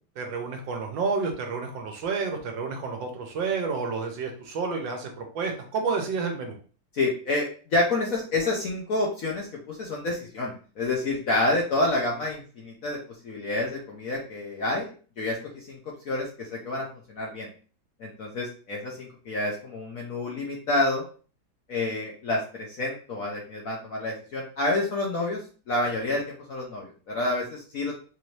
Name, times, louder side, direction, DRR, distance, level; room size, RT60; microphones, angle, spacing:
voice 1, 0.2-6.5, right 4 dB, 70° right, 3 dB, 1.5 m, -30 dB
voice 2, 6.9-13.0 13.2-15.8 16.0-17.5 18.0-21.0 21.7-25.4 25.7-26.2 26.5-28.0, left 2 dB, 60° left, -1 dB, 0.9 m, -28 dB
4.3 x 2.7 x 3.1 m, 0.39 s
omnidirectional pair, 2.2 m